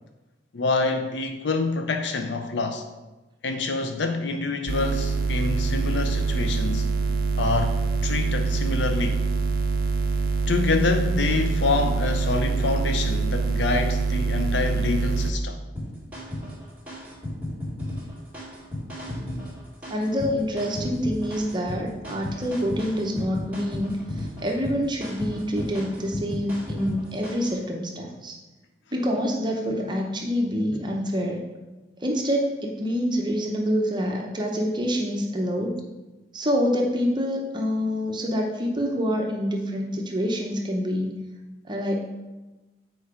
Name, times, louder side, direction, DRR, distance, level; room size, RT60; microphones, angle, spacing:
voice 1, 0.5-2.8 3.4-6.9 7.4-9.2 10.5-15.6, left 3 dB, 85° left, 6 dB, 0.6 m, -26 dB
sound 1, 4.7-15.3, right 4 dB, 55° right, 0.5 m, -25 dB
sound 2, 15.8-27.6, left 1 dB, 10° right, 2.1 m, -35 dB
voice 2, 19.9-28.4 28.9-31.4 32.0-35.7 36.3-41.1 41.7-42.0, equal, 25° right, 0 dB, 0.8 m, -26 dB
7.1 x 4.6 x 4.8 m, 1.1 s
head